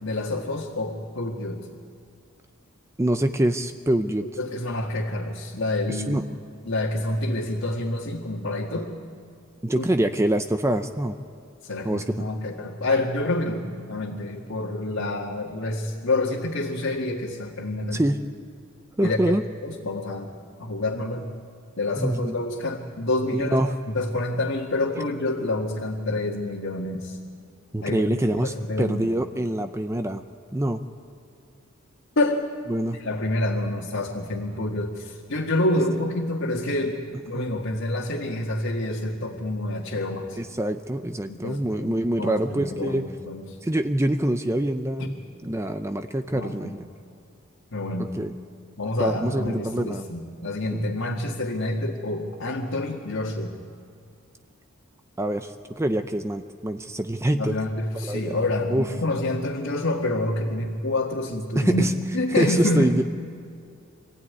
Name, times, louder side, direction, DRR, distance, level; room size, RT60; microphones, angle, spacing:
voice 1, 0.0-1.7 4.2-6.2 6.7-8.9 9.8-9.9 11.6-18.0 19.0-19.4 19.6-20.3 20.6-21.3 21.8-23.6 23.9-27.2 27.8-29.1 32.2-32.4 32.9-37.0 37.3-40.4 41.3-43.6 45.0-45.1 46.3-46.8 47.7-48.1 48.8-53.5 57.3-61.8 62.1-63.0, left 2 dB, 70° left, -3 dB, 1.9 m, -27 dB
voice 2, 3.0-4.3 5.9-6.2 9.6-11.2 11.8-12.0 17.9-18.2 19.0-19.4 22.0-22.4 23.3-23.7 27.7-30.2 30.5-30.8 32.7-33.0 37.4-37.5 40.4-43.1 43.6-45.2 45.4-46.9 48.1-48.3 49.0-50.0 50.7-50.9 55.2-57.5 57.9-58.4 58.7-58.8 61.6-61.9 62.3-63.0, right 1 dB, 15° right, 8 dB, 0.6 m, -25 dB
25.5 x 15.5 x 9.6 m, 2.4 s
head